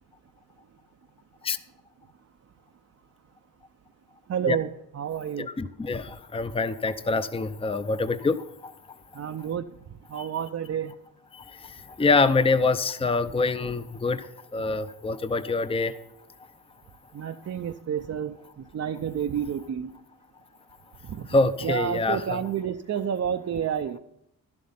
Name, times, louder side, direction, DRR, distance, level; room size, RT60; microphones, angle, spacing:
voice 1, 4.3-4.7 4.9-5.5 9.1-9.7 10.1-10.9 17.1-18.4 18.7-19.9 21.1-21.3 21.6-24.0, right 8 dB, 45° right, 6 dB, 0.5 m, -29 dB
voice 2, 5.4-8.7 10.1-10.3 11.3-14.3 14.5-16.0 21.3-22.4, left 3 dB, 15° left, 13 dB, 0.6 m, -25 dB
11.5 x 7.6 x 5.6 m, 0.81 s
cardioid pair, 65°, 36 cm